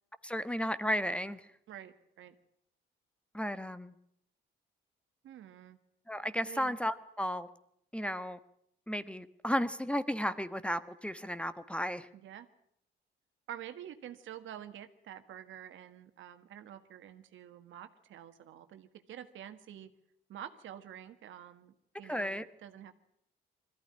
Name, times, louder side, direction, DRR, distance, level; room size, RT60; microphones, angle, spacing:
voice 1, 0.2-1.4 3.3-3.9 6.1-7.5 7.9-8.4 8.9-12.1 22.1-22.4, equal, 5° left, 13 dB, 1.2 m, -34 dB
voice 2, 1.7-2.4 5.2-5.8 6.5-6.8 12.1-12.5 13.5-19.9 20.3-22.9, right 10 dB, 80° right, 8 dB, 1.7 m, -48 dB
21.5 x 15.0 x 9.9 m, 0.73 s
cardioid pair, 90°, 20 cm